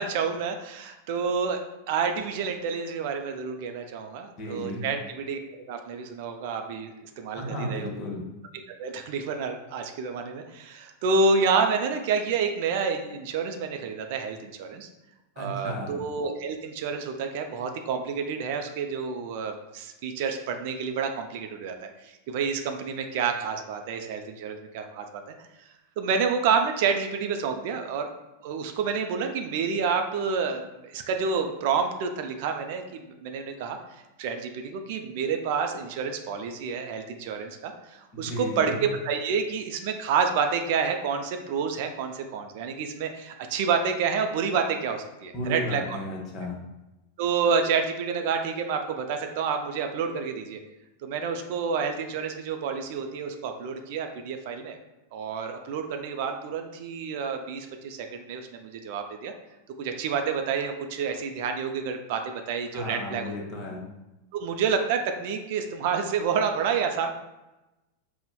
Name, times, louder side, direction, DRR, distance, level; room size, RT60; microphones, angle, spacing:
voice 1, 0.0-1.6 1.9-5.4 5.7-7.9 8.8-14.9 15.4-21.7 22.0-25.1 26.0-28.1 28.4-33.8 34.2-46.0 47.2-50.6 51.0-54.8 55.1-59.3 59.8-63.3 64.3-67.1, right 5 dB, 60° right, 6 dB, 0.3 m, -29 dB
voice 2, 4.4-4.8 7.3-8.3 15.4-16.0 38.1-38.8 45.3-46.6 62.7-63.8, left 1 dB, 40° left, -1 dB, 0.8 m, -34 dB
4.0 x 2.0 x 2.2 m, 0.99 s
hypercardioid pair, 95°, 0 cm